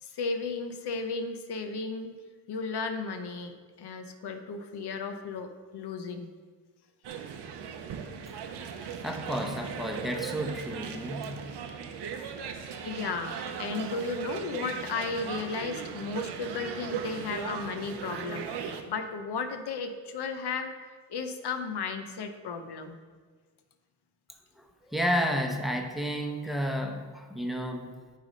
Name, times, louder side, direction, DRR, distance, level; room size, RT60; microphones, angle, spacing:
voice 1, 0.0-2.1 2.5-6.3 12.8-20.7 21.1-23.0, left 4 dB, 75° left, 7 dB, 0.7 m, -34 dB
sound 1, 7.0-18.8, right 7 dB, 80° right, 0.7 m, -38 dB
voice 2, 9.0-11.4 24.6-27.9, equal, ahead, 4 dB, 0.8 m, -31 dB
9.1 x 3.3 x 5.2 m, 1.4 s
cardioid pair, 75°, 40 cm